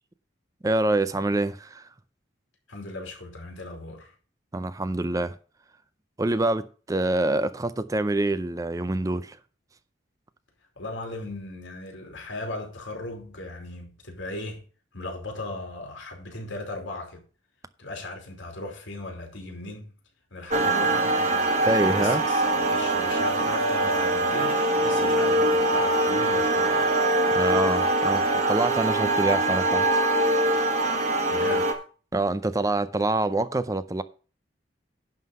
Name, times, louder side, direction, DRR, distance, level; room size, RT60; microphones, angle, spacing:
voice 1, 0.6-1.9 4.5-5.3 6.2-9.4 21.7-22.2 27.4-30.0 32.1-34.0, right 2 dB, 15° right, 0.4 m, -26 dB
voice 2, 2.7-4.1 10.8-14.6 14.9-17.2 17.8-19.9 20.3-27.0 31.3-31.7, left 2 dB, 85° left, 3.0 m, -37 dB
sound 1, 20.5-31.7, right 2 dB, 35° right, 1.6 m, -23 dB
11.0 x 3.9 x 7.5 m
head